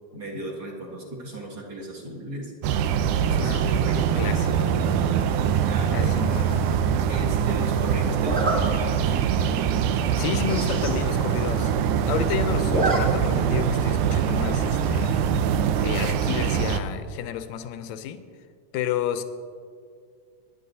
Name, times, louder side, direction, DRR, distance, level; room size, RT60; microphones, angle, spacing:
voice 1, 0.1-2.5 3.1-4.5 5.7-6.1 7.1-9.0, right 1 dB, 45° right, -5 dB, 2.7 m, -36 dB
sound 1, 2.6-16.8, right 8 dB, 85° right, 2.0 m, -23 dB
voice 2, 4.0-4.5 5.9-6.7 10.2-11.7 12.1-15.3 15.8-18.2 18.7-19.2, left 9 dB, 75° left, 9 dB, 1.8 m, -31 dB
Zipper (clothing), 6.3-6.7 8.2-8.6 9.2-9.3 9.7-9.8 10.0-10.1 10.4-11.0 11.3-11.4 11.6-12.2 12.5-13.0 13.3-13.4 14.8-15.1, right 2 dB, 25° right, 1.9 m, -28 dB
26.5 x 10.0 x 2.7 m, 2.2 s
omnidirectional pair, 3.6 m